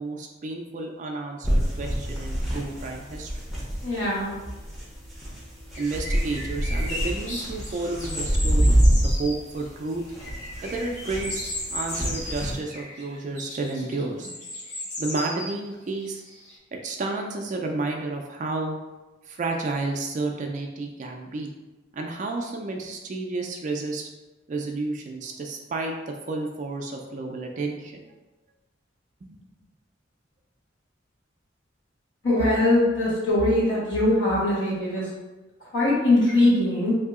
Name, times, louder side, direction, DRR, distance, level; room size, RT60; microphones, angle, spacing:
voice 1, 0.0-3.3 5.8-10.0 10.6-11.4 11.7-14.3 15.0-16.2 16.8-18.8 19.2-21.5 21.9-24.1 24.5-28.0 29.2-29.4, right 3 dB, 40° right, 2 dB, 0.3 m, -31 dB
sound 1, 1.4-12.6, equal, ahead, 0.7 m, -26 dB
voice 2, 3.8-4.3 32.2-35.1 35.6-36.9, left 1 dB, 70° left, -8 dB, 1.3 m, -22 dB
sound 2, 5.7-9.6 10.2-15.6 16.0-16.5, left 1 dB, 40° left, 0.7 m, -36 dB
2.7 x 2.7 x 3.6 m, 1.1 s
head